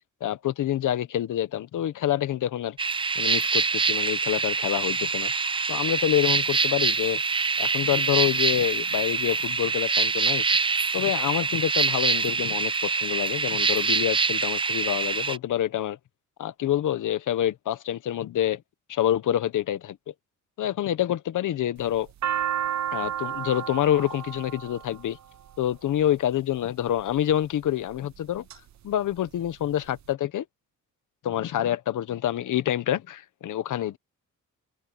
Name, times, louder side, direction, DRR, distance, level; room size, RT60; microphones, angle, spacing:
voice 1, 0.2-2.8 3.2-5.3 5.7-7.2 7.6-10.4 10.9-16.0 16.4-18.6 18.9-20.1 20.6-22.1 22.9-25.2 25.6-28.4 28.8-30.4 31.2-34.0, left 11 dB, 70° left, 1.0 m, -27 dB
sound 1, 2.8-15.4, right 4 dB, 15° right, 0.4 m, -25 dB
sound 2, 21.8-26.0 26.8-27.3 27.9-28.6 28.9-29.0 29.2-30.0, right 10 dB, 60° right, 0.9 m, -31 dB
open air
cardioid pair, 140°, 32 cm